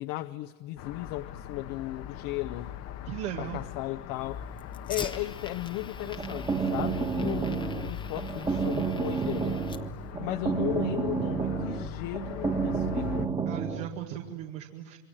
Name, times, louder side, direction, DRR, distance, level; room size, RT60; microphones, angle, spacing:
voice 1, 0.0-2.7 3.4-4.4 4.9-9.6 10.2-13.3, left 17 dB, 55° left, 9 dB, 0.8 m, -35 dB
sound 1, 0.8-13.3, left 10 dB, 40° left, 1.1 m, -41 dB
voice 2, 3.1-3.6 13.5-15.0, right 11 dB, 80° right, 1 dB, 2.2 m, -37 dB
Fire, 4.1-10.1, left 4 dB, 10° left, 0.9 m, -44 dB
sound 2, 6.0-13.9, right 5 dB, 15° right, 1.4 m, -30 dB
27.5 x 23.5 x 8.9 m, 1.4 s
cardioid pair, 145°, 40 cm